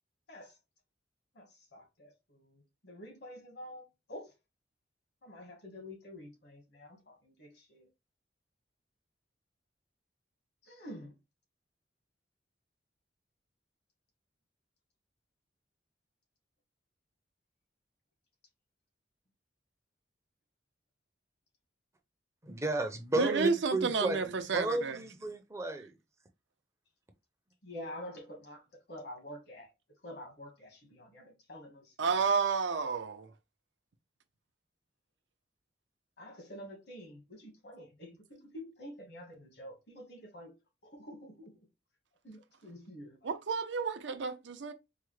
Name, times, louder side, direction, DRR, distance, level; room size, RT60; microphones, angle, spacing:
voice 1, 1.3-4.3 5.2-7.9 10.6-11.2 27.6-29.7 30.0-32.3 36.2-40.6 40.8-41.7 42.2-43.3, left 1 dB, 65° left, 1.5 m, -48 dB
voice 2, 22.4-25.9, right 2 dB, 15° right, 0.5 m, -33 dB
voice 3, 23.2-25.0 32.0-33.3 43.2-44.7, right 5 dB, 80° right, 0.6 m, -31 dB
4.7 x 2.1 x 3.1 m
head